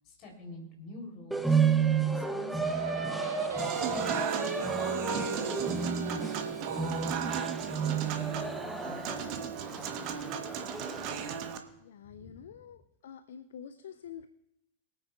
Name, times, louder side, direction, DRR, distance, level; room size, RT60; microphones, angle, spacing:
voice 1, 0.1-3.1 4.0-4.9 5.3-7.2 7.7-10.5 12.0-12.6, left 1 dB, 40° left, 1 dB, 3.5 m, -49 dB
sound 1, 1.3-11.5, right 5 dB, 5° right, 0.7 m, -32 dB
Singing, 2.6-8.0, right 7 dB, 70° right, 0.3 m, -38 dB
Human voice / Acoustic guitar / Piano, 3.6-11.6, right 8 dB, 40° right, 1.1 m, -36 dB
voice 2, 11.8-14.3, left 8 dB, 60° left, 11 dB, 0.5 m, -47 dB
22.5 x 8.8 x 2.4 m, 0.84 s
figure-of-eight pair, 90°, 0 cm